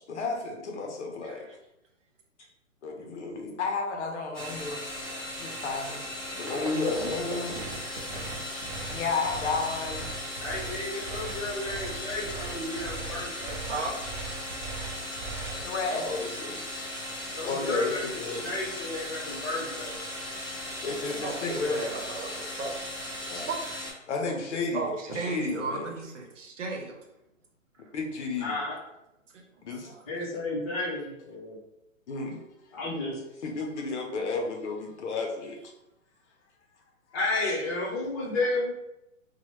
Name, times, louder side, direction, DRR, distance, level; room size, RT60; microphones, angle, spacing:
voice 1, 0.1-1.5 2.8-5.0 5.4-6.0 6.4-7.6 8.9-10.1 15.6-16.6 17.4-18.5 20.8-21.8 23.3-23.5 24.1-24.8 25.1-25.9 27.9-28.6 29.6-29.9 32.1-32.4 33.4-35.6, left 4 dB, 60° left, 2 dB, 0.8 m, -32 dB
voice 2, 1.2-1.5 13.7-14.0 21.2-22.8 23.4-23.6 24.7-27.0 29.3-30.0, right 3 dB, 65° right, 2 dB, 0.9 m, -35 dB
sound 1, 4.3-23.9, left 1 dB, 10° left, 1.4 m, -37 dB
sound 2, 6.4-15.7, right 4 dB, 40° right, 0.6 m, -39 dB
voice 3, 10.4-13.6 17.2-18.0 18.3-20.0 28.4-28.7 30.1-31.6 32.7-33.2 37.1-38.7, left 2 dB, 25° left, -5 dB, 1.0 m, -32 dB
3.0 x 2.3 x 3.0 m, 0.87 s
hypercardioid pair, 145°, 40 cm